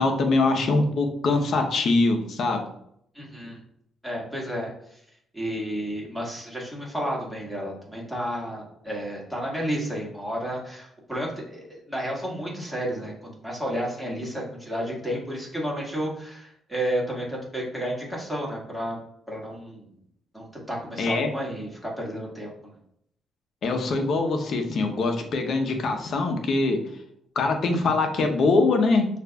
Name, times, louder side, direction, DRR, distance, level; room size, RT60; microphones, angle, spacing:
voice 1, 0.0-2.6 21.0-21.3 23.6-26.8 27.4-29.1, left 3 dB, 60° left, 4 dB, 0.8 m, -23 dB
voice 2, 3.1-3.6 4.0-5.0 5.3-13.1 13.4-19.0 19.3-19.9 20.3-22.7, equal, ahead, -4 dB, 1.6 m, -31 dB
6.4 x 2.5 x 2.3 m, 0.72 s
cardioid pair, 90°, 0 cm